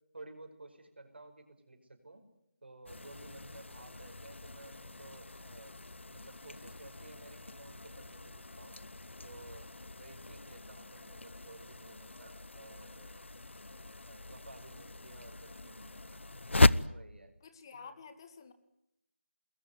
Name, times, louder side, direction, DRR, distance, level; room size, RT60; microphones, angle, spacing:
voice 1, 0.1-2.2 2.6-5.7 6.1-8.8 9.2-13.2 14.0-16.4 16.9-17.3 17.7-17.9, right 2 dB, 55° right, 6 dB, 5.5 m, -54 dB
sound 1, 2.9-16.9, left 2 dB, 65° left, 1.0 m, -36 dB
voice 2, 17.4-18.5, left 5 dB, 20° left, 9 dB, 2.2 m, -50 dB
28.0 x 21.0 x 9.7 m, 0.80 s
figure-of-eight pair, 165°, 7 cm